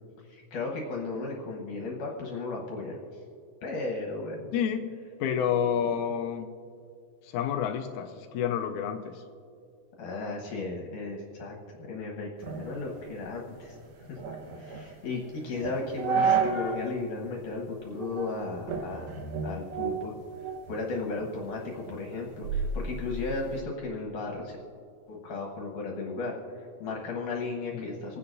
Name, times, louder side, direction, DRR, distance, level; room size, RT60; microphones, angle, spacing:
voice 1, 0.2-3.2 3.6-4.5 5.3-5.4 5.8-6.0 10.0-13.8 14.1-14.2 14.6-19.1 19.4-20.1 20.7-24.6 25.1-28.2, left 3 dB, 70° left, -1 dB, 2.5 m, -35 dB
voice 2, 4.5-4.9 5.2-6.5 7.2-9.2 27.7-27.9, left 8 dB, 85° left, 6 dB, 1.7 m, -29 dB
sound 1, 12.4-16.9 17.3-17.4 18.0-18.4 18.7-20.8 21.2-23.6, right 5 dB, 60° right, 2.0 m, -32 dB
28.0 x 9.7 x 2.6 m, 2.4 s
omnidirectional pair, 4.1 m